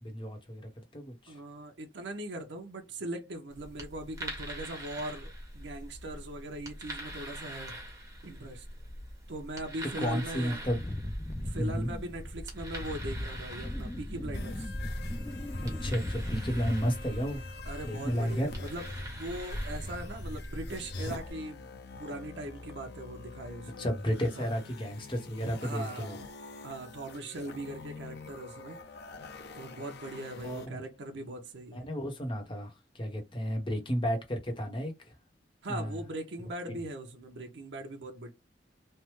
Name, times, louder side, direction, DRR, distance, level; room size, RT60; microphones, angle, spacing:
voice 1, 0.0-1.4 10.0-10.8 11.6-11.9 15.6-17.4 17.8-18.5 23.8-26.2 30.4-30.9 31.7-35.1 35.7-36.0 36.8-36.9, equal, 30° left, 0.9 m, -33 dB
voice 2, 1.3-7.8 8.2-8.6 9.3-10.6 11.4-14.7 17.7-18.9 19.2-21.7 22.0-23.9 24.4-24.5 25.6-26.3 26.6-28.8 29.5-31.9 35.6-38.3, right 1 dB, 75° right, 0.7 m, -40 dB
sound 1, 3.5-21.3, right 1 dB, 20° right, 1.1 m, -45 dB
Wind, 10.6-17.5 17.8-18.3, left 1 dB, 15° left, 0.3 m, -38 dB
sound 2, 14.3-30.7, left 2 dB, 65° left, 0.6 m, -42 dB
3.2 x 2.1 x 3.0 m
head